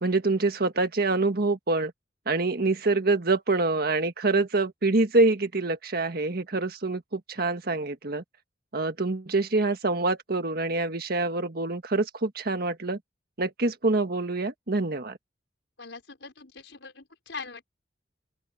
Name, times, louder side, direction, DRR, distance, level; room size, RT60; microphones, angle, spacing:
voice 1, 0.0-1.9 2.2-8.2 8.7-13.0 13.4-15.2, right 3 dB, 55° right, 1.7 m, -26 dB
voice 2, 15.8-17.6, left 4 dB, 85° left, 5.1 m, -42 dB
open air
head